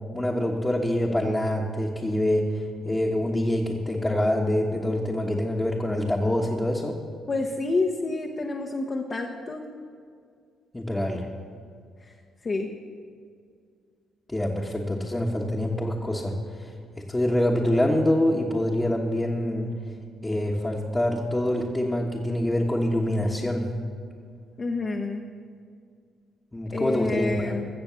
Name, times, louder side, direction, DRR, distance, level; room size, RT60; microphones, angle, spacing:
voice 1, 0.1-2.5 2.8-6.9 10.7-11.2 14.3-16.3 17.1-19.7 20.2-23.7 26.5-27.5, left 1 dB, 15° left, -4 dB, 1.3 m, -25 dB
voice 2, 7.3-9.6 12.4-12.7 24.6-25.2 26.7-27.7, left 3 dB, 35° left, 1 dB, 1.0 m, -28 dB
15.0 x 6.9 x 6.9 m, 2.2 s
cardioid pair, 90°, 0 cm